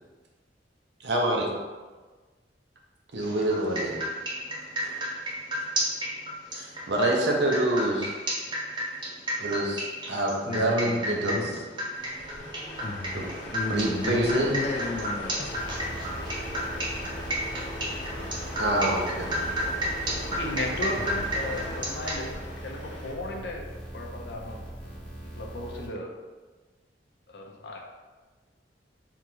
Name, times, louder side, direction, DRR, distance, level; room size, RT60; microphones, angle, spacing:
voice 1, 1.0-1.5 3.1-4.0 4.8-5.0 6.5-8.2 9.4-11.5 13.1-13.2 13.7-14.5 18.6-19.5, right 1 dB, 70° right, -1 dB, 0.7 m, -26 dB
sound 1, 3.2-22.2, equal, 25° right, 0.8 m, -32 dB
voice 2, 10.5-11.6 12.8-15.6 21.0-21.1, left 2 dB, 35° left, 3 dB, 0.4 m, -33 dB
Truck, 11.9-23.1, left 1 dB, 90° left, 1.0 m, -38 dB
sound 2, 15.4-25.9, right 1 dB, 10° left, 1.0 m, -41 dB
voice 3, 20.3-23.7 23.9-24.6 25.4-26.1 27.3-27.8, left 1 dB, 70° left, 0 dB, 0.7 m, -35 dB
3.6 x 2.5 x 4.5 m, 1.3 s
head